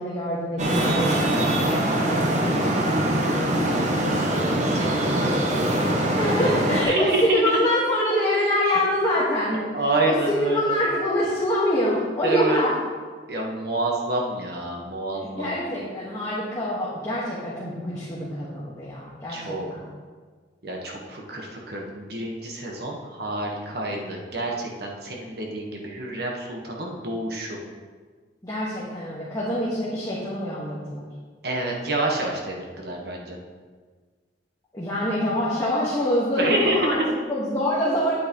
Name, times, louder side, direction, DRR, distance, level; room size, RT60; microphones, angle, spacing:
voice 1, 0.0-3.0 3.3-4.1 6.1-9.6 10.0-12.7 15.2-19.9 28.4-31.1 34.7-37.0 37.3-38.2, left 1 dB, 20° left, -8 dB, 1.5 m, -25 dB
Traffic noise roadway noise, 0.6-6.8, right 1 dB, 40° right, 1.1 m, -23 dB
voice 2, 4.6-5.3 6.8-7.6 9.4-10.8 12.2-12.6 13.3-15.6 19.3-19.7 20.6-27.6 31.4-33.4 36.4-37.1, right 2 dB, 60° right, -1 dB, 1.4 m, -28 dB
9.3 x 8.6 x 3.1 m, 1.5 s
head